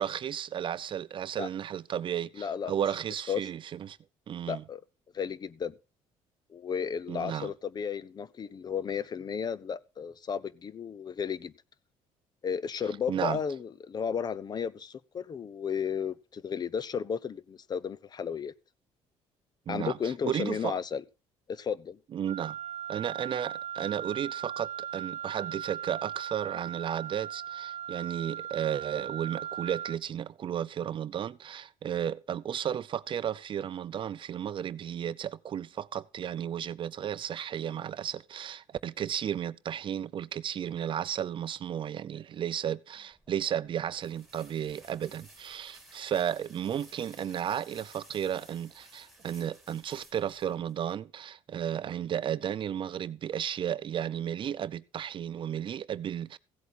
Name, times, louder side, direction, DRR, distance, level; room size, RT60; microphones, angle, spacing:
voice 1, 0.0-4.0 4.3-4.6 7.1-7.5 13.1-13.4 19.7-20.8 22.1-22.6 22.9-56.4, right 9 dB, 45° right, 0.6 m, -33 dB
voice 2, 2.4-2.7 3.3-3.5 4.5-4.8 5.1-5.7 6.5-11.5 12.4-18.5 19.7-21.0 21.5-22.0, left 7 dB, 35° left, 0.6 m, -33 dB
Wind instrument woodwind instrument, 22.3-30.0, right 10 dB, 70° right, 0.8 m, -38 dB
sound 1, 43.1-51.0, right 1 dB, ahead, 2.7 m, -56 dB
15.5 x 8.1 x 4.1 m
cardioid pair, 115°, 12 cm